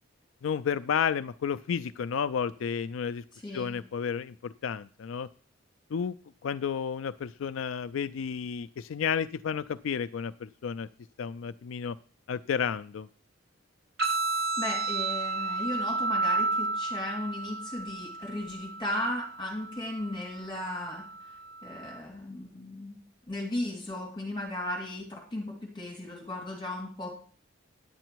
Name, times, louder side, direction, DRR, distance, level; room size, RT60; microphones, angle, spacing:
voice 1, 0.4-3.2 3.5-5.3 5.9-6.1 6.4-10.9 11.2-12.0 12.3-13.1, left 7 dB, 80° left, 13 dB, 0.4 m, -31 dB
voice 2, 3.4-3.7 14.6-21.1 21.6-23.0 23.3-27.2, left 1 dB, 25° left, 0 dB, 2.6 m, -36 dB
sound 1, 14.0-22.0, right 3 dB, 75° right, 6.7 m, -32 dB
10.0 x 8.9 x 4.6 m, 0.41 s
head